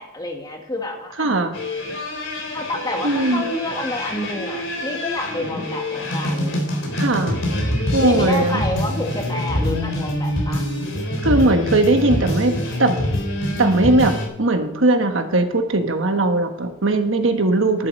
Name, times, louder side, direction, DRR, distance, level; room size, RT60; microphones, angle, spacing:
voice 1, 0.0-1.4 2.5-6.6 8.0-10.7, left 1 dB, 20° left, 3 dB, 1.6 m, -28 dB
voice 2, 1.2-1.6 3.0-3.5 7.0-7.5 7.9-8.6 11.2-13.0 13.6-17.9, right 2 dB, 85° right, 6 dB, 1.3 m, -19 dB
sound 1, 1.5-14.3, left 1 dB, 85° left, 3.4 m, -25 dB
11.0 x 7.5 x 6.4 m, 0.86 s
head